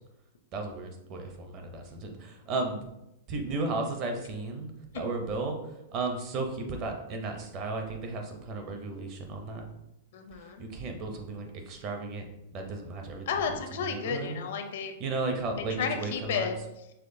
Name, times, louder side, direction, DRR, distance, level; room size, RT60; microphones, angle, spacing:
voice 1, 0.5-2.8 3.3-5.6 5.9-9.7 10.6-12.2 12.5-13.3 13.7-14.4 15.0-16.5, right 3 dB, 25° right, 4 dB, 0.6 m, -34 dB
voice 2, 10.1-10.6 13.3-14.9 15.8-16.5, left 6 dB, 55° left, 6 dB, 0.5 m, -32 dB
5.6 x 3.4 x 2.6 m, 0.89 s
supercardioid pair, 175°, 0 cm